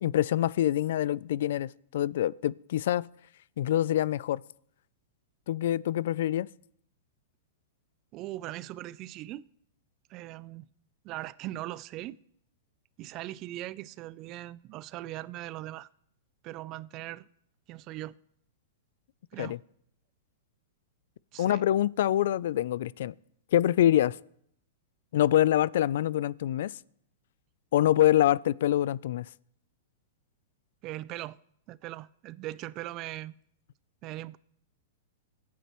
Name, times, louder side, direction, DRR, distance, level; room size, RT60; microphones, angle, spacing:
voice 1, 0.0-3.1 3.6-4.4 5.5-6.5 19.4-19.6 21.4-23.1 23.5-24.2 25.1-26.7 27.7-29.3, left 12 dB, 70° left, 0.3 m, -25 dB
voice 2, 8.1-9.5 10.1-10.7 11.0-12.2 13.0-15.9 16.4-17.3 17.7-18.2 19.3-19.6 21.3-21.6 30.8-31.4 31.7-33.3 34.0-34.4, right 16 dB, 35° right, 0.4 m, -40 dB
23.5 x 8.3 x 3.1 m
hypercardioid pair, 140°, 0 cm